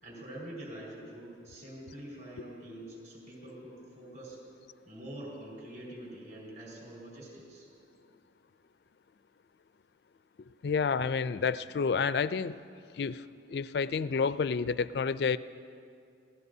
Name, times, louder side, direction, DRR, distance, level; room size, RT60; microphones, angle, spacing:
voice 1, 0.0-4.4 4.9-7.7, right 1 dB, 40° right, -4 dB, 5.0 m, -45 dB
voice 2, 10.6-12.6 12.9-13.2 13.5-15.4, left 5 dB, 60° left, 15 dB, 0.4 m, -29 dB
26.5 x 17.0 x 2.7 m, 2.4 s
head